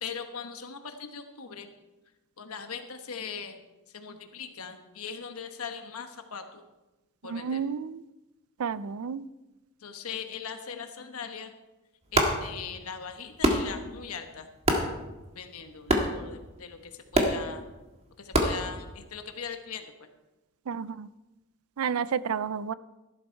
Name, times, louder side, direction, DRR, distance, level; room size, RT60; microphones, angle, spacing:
voice 1, 0.0-1.7 2.4-3.6 3.9-6.6 7.2-7.6 9.8-11.5 12.1-14.5 15.3-17.7 18.2-20.1, left 6 dB, 90° left, 7 dB, 1.1 m, -40 dB
voice 2, 7.2-8.0 8.6-9.2 20.7-21.1 21.8-22.7, right 6 dB, 80° right, 18 dB, 0.4 m, -31 dB
sound 1, 12.0-19.4, right 1 dB, 30° right, 1.7 m, -30 dB
13.5 x 11.5 x 4.5 m, 1.1 s
head